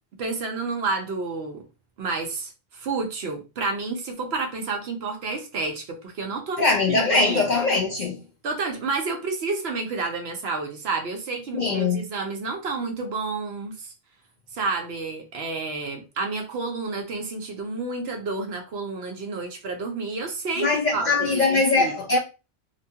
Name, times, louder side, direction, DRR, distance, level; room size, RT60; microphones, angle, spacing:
voice 1, 0.2-1.6 2.0-7.4 8.4-13.9 14.5-21.9, right 3 dB, 65° right, 0.9 m, -30 dB
voice 2, 6.6-8.2 11.5-12.0 20.6-22.2, left 3 dB, 60° left, 0.5 m, -22 dB
2.9 x 2.3 x 2.7 m
omnidirectional pair, 1.2 m